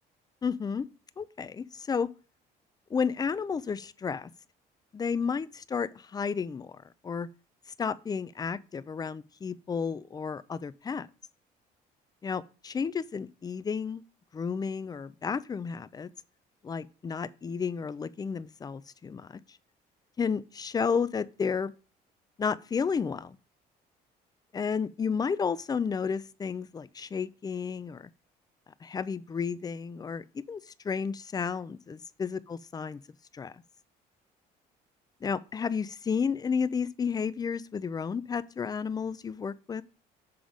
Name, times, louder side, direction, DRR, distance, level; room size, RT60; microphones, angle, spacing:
voice 1, 0.4-0.9 1.2-2.1 2.9-4.3 4.9-7.3 7.8-11.1 12.2-14.0 14.3-16.1 16.6-19.4 20.2-21.7 22.4-23.4 24.5-28.1 28.8-33.0 33.3-33.5 35.2-39.8, left 6 dB, 25° left, 0.4 m, -32 dB
7.1 x 3.8 x 4.9 m
cardioid pair, 110°, 17 cm